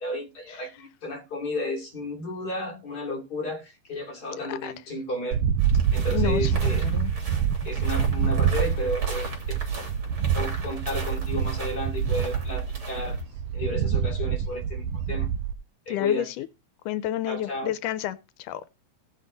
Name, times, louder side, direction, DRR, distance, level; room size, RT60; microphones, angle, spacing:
voice 1, 0.0-5.4 5.9-6.9 7.6-9.6 10.3-13.2 13.5-15.3 15.9-16.3 17.2-17.7, left 1 dB, 30° left, 3.4 m, -33 dB
voice 2, 4.4-4.7 6.1-7.1 15.9-16.5 16.9-18.6, left 13 dB, 90° left, 2.2 m, -31 dB
sound 1, 5.3-15.5, right 8 dB, 80° right, 1.5 m, -26 dB
sound 2, 5.6-13.2, right 3 dB, 40° right, 3.5 m, -37 dB
17.5 x 6.0 x 3.9 m
omnidirectional pair, 3.6 m